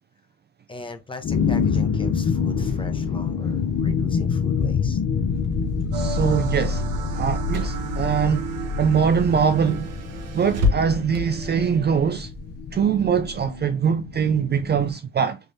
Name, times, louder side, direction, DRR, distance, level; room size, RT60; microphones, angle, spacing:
voice 1, 0.7-5.0, left 2 dB, 15° left, 0.9 m, -39 dB
sound 1, 1.2-14.9, left 5 dB, 45° left, 0.6 m, -26 dB
Car / Engine, 5.1-13.5, left 3 dB, 60° right, 0.9 m, -33 dB
voice 2, 5.9-6.9 7.1-8.5 8.8-9.9 10.3-12.3 12.7-15.4, right 7 dB, 35° right, 0.4 m, -22 dB
sound 2, 5.9-12.1, right 8 dB, 80° right, 0.7 m, -35 dB
3.4 x 3.1 x 2.7 m
supercardioid pair, 70°, 30 cm